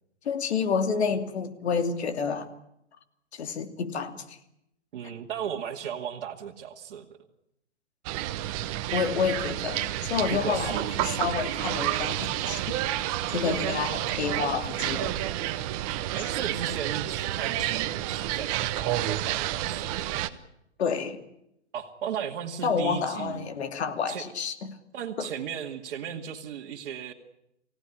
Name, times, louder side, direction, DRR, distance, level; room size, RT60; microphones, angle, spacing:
voice 1, 0.2-2.5 3.3-4.4 8.9-12.8 13.2-15.2 20.8-21.2 22.6-24.7 25.2-25.3, left 6 dB, 65° left, 7 dB, 2.9 m, -29 dB
voice 2, 4.9-7.1 10.3-11.1 13.8-14.1 16.1-19.9 21.7-23.5 24.1-24.2 24.9-27.1, right 8 dB, 50° right, -1 dB, 2.3 m, -36 dB
sound 1, 8.1-20.3, right 14 dB, 30° right, 1.1 m, -30 dB
25.0 x 17.0 x 10.0 m, 0.80 s
hypercardioid pair, 145°, 35 cm